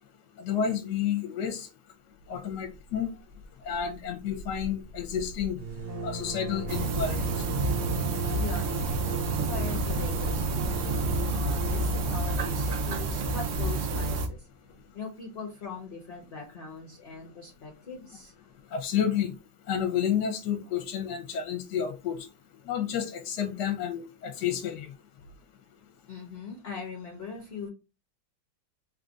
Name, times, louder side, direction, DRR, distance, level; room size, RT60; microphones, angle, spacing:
voice 1, 0.4-1.7 2.3-3.1 3.6-5.6 6.0-7.3 18.7-19.3 19.7-22.3 22.7-24.9, left 8 dB, 75° left, 1.2 m, -30 dB
sound 1, 2.6-3.0 3.3-3.4 3.7-14.4, right 1 dB, 85° right, 1.5 m, -36 dB
sound 2, 6.7-14.3, right 3 dB, 70° right, 0.7 m, -29 dB
voice 2, 8.3-14.5 14.9-18.3 26.1-27.7, left 5 dB, 45° left, 0.9 m, -41 dB
3.5 x 2.4 x 3.8 m
omnidirectional pair, 1.9 m